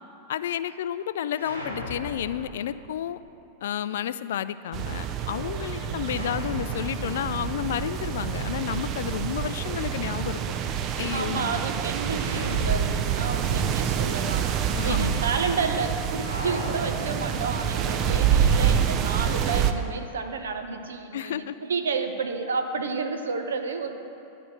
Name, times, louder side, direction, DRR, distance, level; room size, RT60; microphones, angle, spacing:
voice 1, 0.3-3.2 3.6-10.4 11.0-11.5 14.8-15.2 21.1-21.6, left 10 dB, 60° left, 14 dB, 0.3 m, -31 dB
sound 1, 1.3-3.3 6.0-9.0 12.1-13.5 13.8-13.9 16.2-17.9, left 1 dB, 85° right, 1.2 m, -38 dB
sound 2, 4.7-19.7, right 8 dB, 35° right, 0.5 m, -27 dB
voice 2, 11.1-23.9, right 4 dB, 65° right, 6 dB, 0.8 m, -31 dB
11.0 x 5.0 x 7.3 m, 2.8 s
figure-of-eight pair, 90°, 0 cm